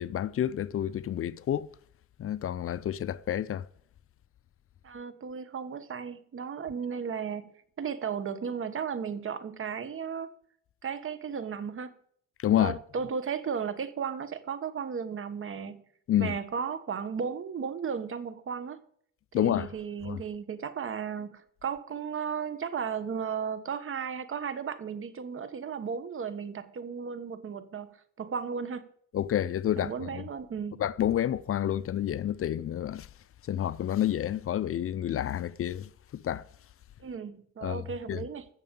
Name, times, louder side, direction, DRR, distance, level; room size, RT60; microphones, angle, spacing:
voice 1, 0.0-1.7 2.2-3.6 12.4-12.8 16.1-16.3 19.3-19.7 20.1-20.2 29.1-30.2 30.8-33.1 33.5-36.4 37.6-38.2, left 11 dB, 50° left, 0.5 m, -29 dB
voice 2, 4.8-7.5 7.8-10.3 10.8-12.0 12.5-15.8 16.2-18.8 19.3-28.9 29.8-30.8 37.0-38.5, right 6 dB, 45° right, 1.2 m, -35 dB
16.5 x 6.7 x 5.3 m
cardioid pair, 110°, 29 cm